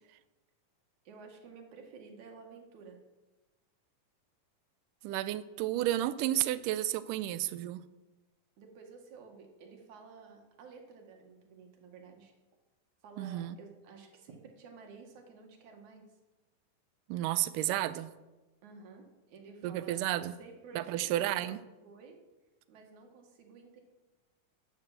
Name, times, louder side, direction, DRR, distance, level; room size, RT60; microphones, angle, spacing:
voice 1, 1.0-3.0 8.6-12.3 13.0-16.2 18.6-21.5 21.8-22.2 22.7-23.8, right 4 dB, 60° right, 3 dB, 2.8 m, -52 dB
voice 2, 5.0-7.8 13.2-13.6 17.1-18.1 19.6-20.3 20.8-21.6, right 14 dB, 80° right, 13 dB, 1.9 m, -32 dB
11.5 x 8.3 x 7.4 m, 1.1 s
omnidirectional pair, 4.3 m